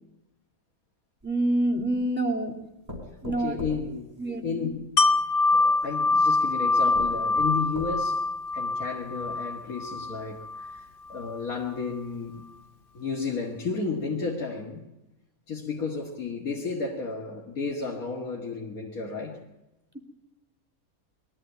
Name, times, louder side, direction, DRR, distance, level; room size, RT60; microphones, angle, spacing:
voice 1, 1.2-2.5 3.2-3.6 4.2-4.7, right 1 dB, 5° right, 2.8 m, -26 dB
sound 1, 1.2-2.1 2.9-4.8 5.8-5.9 6.5-6.6 6.9-8.3 8.8-8.9 9.2-9.3, left 1 dB, 25° right, 4.6 m, -41 dB
voice 2, 3.3-4.2 4.4-4.9 5.5-12.4 12.9-14.8 15.5-19.4, left 4 dB, 80° left, 2.5 m, -33 dB
Wind chime, 5.0-10.8 11.2-11.3, left 3 dB, 45° left, 0.9 m, -25 dB
22.5 x 14.5 x 9.2 m
omnidirectional pair, 1.5 m